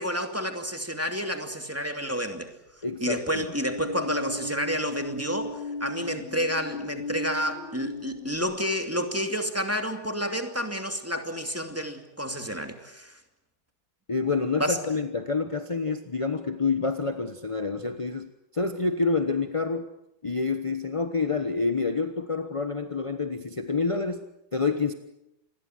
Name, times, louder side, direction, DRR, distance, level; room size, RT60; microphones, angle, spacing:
voice 1, 0.0-2.5 3.0-13.2 14.6-14.8, equal, 5° right, 6 dB, 2.4 m, -30 dB
voice 2, 2.8-3.5 14.1-19.9 20.2-24.2 24.5-24.9, left 4 dB, 25° left, 8 dB, 0.8 m, -28 dB
sound 1, 3.5-8.4, left 2 dB, 55° left, 6.6 m, -36 dB
27.5 x 21.5 x 7.9 m, 0.83 s
omnidirectional pair, 2.4 m